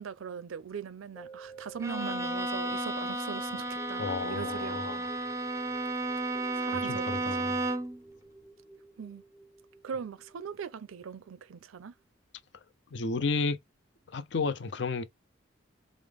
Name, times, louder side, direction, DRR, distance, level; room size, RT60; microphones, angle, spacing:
voice 1, 0.0-5.4 6.5-7.5 9.0-9.2 9.8-11.9, right 6 dB, 85° right, 0.4 m, -40 dB
sound 1, 1.1-11.5 12.0-12.1, right 3 dB, 20° left, 0.7 m, -51 dB
Bowed string instrument, 1.8-8.0, right 2 dB, 15° right, 0.4 m, -33 dB
voice 2, 4.0-5.1 6.7-7.7 12.9-13.6 14.1-15.0, left 4 dB, 60° left, 0.5 m, -32 dB
4.9 x 2.0 x 3.5 m
head